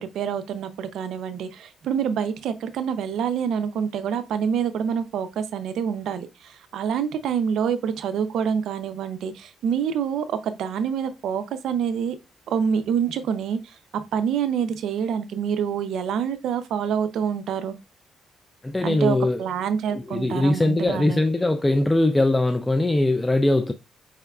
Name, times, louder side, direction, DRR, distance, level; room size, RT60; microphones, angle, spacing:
voice 1, 0.0-12.2 12.5-17.7 18.8-21.2, right 7 dB, 75° right, 0.5 m, -26 dB
voice 2, 18.6-19.4 19.9-23.7, left 1 dB, 15° left, 0.3 m, -21 dB
4.8 x 3.5 x 2.3 m
cardioid pair, 90°, 0 cm